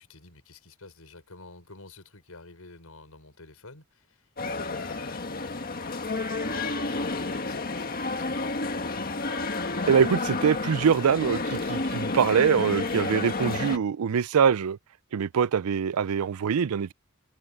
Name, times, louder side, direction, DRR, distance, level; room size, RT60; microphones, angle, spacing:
voice 1, 0.0-5.4 6.2-9.2, left 3 dB, 85° left, 5.3 m, -49 dB
sound 1, 4.4-13.8, left 3 dB, 45° left, 1.7 m, -30 dB
voice 2, 9.9-14.8 15.1-16.9, right 7 dB, 90° right, 0.4 m, -23 dB
head